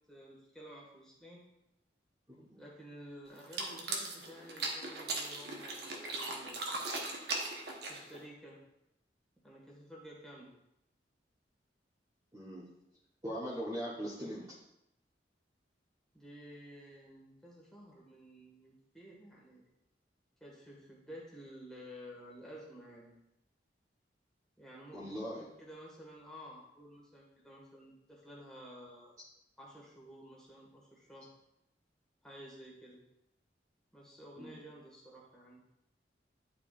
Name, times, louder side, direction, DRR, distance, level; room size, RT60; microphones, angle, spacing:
voice 1, 0.1-1.4 2.6-6.8 7.9-8.6 9.4-10.5 16.1-19.6 20.4-23.1 24.6-29.1 29.6-31.3 32.2-33.0 33.9-35.6, equal, 5° left, -5 dB, 1.8 m, -52 dB
voice 2, 2.3-2.6 12.3-12.6 13.2-14.4 24.9-25.4 34.4-34.6, equal, 20° right, -7 dB, 1.1 m, -40 dB
sound 1, 3.4-8.2, right 2 dB, 65° right, 1.1 m, -38 dB
11.0 x 4.8 x 2.5 m, 0.83 s
head